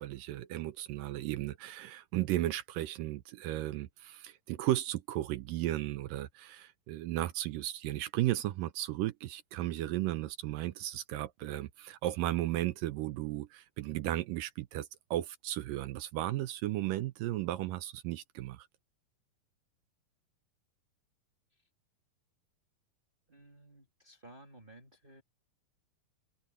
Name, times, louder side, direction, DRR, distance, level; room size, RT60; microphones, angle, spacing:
voice 1, 0.0-18.7, right 15 dB, 80° right, 2.0 m, -35 dB
voice 2, 23.3-25.2, right 1 dB, 20° right, 1.3 m, -55 dB
omnidirectional pair, 4.6 m